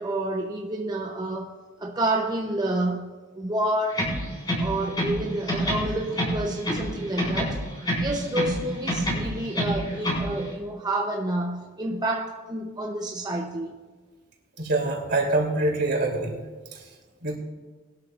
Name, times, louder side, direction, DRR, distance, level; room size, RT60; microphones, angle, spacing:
voice 1, 0.0-1.5 1.8-4.1 4.6-7.6 8.0-13.7, right 1 dB, 20° right, 1 dB, 0.7 m, -29 dB
sound 1, 3.9-5.2 5.5-6.9 7.2-8.6 8.9-10.3, equal, 20° left, 4.6 m, -27 dB
voice 2, 14.6-16.4 17.2-17.4, right 2 dB, 60° right, 0 dB, 2.9 m, -25 dB
21.0 x 12.5 x 2.4 m, 1.4 s
head